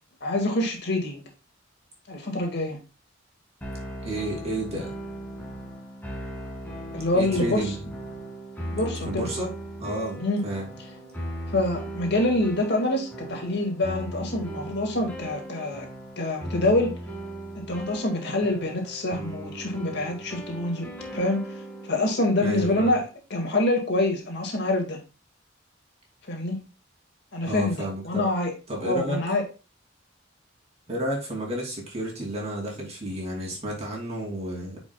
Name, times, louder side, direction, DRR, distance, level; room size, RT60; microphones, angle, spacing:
voice 1, 0.2-1.2 2.1-2.8 6.9-7.7 8.7-9.3 10.2-10.4 11.5-15.9 16.2-17.0 17.6-20.9 21.1-21.4 21.9-23.0 23.3-25.0 26.3-26.6 27.3-28.5 28.8-29.4, left 2 dB, 60° left, 2 dB, 1.9 m, -26 dB
sound 1, 3.6-22.9, right 1 dB, 10° left, 2.0 m, -38 dB
voice 2, 4.0-4.9 7.1-7.7 9.0-9.5 9.8-10.7 22.4-22.9 27.5-28.2 28.7-29.2 30.9-34.8, right 1 dB, 35° right, -2 dB, 2.7 m, -31 dB
9.2 x 5.1 x 2.3 m, 0.31 s
head